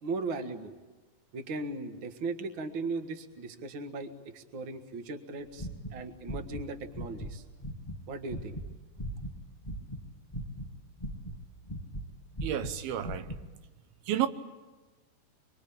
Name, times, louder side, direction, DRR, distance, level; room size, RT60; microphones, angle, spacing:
voice 1, 0.0-0.8 1.3-7.4 8.1-8.6, right 3 dB, 45° right, 1.8 m, -37 dB
sound 1, 5.6-6.6 6.9-7.3 7.6-10.0 10.3-12.1 12.3-13.4, right 1 dB, 15° left, 0.9 m, -38 dB
voice 2, 12.4-13.3 14.1-14.3, right 11 dB, 90° right, 3.0 m, -31 dB
25.0 x 24.5 x 8.6 m
omnidirectional pair, 4.2 m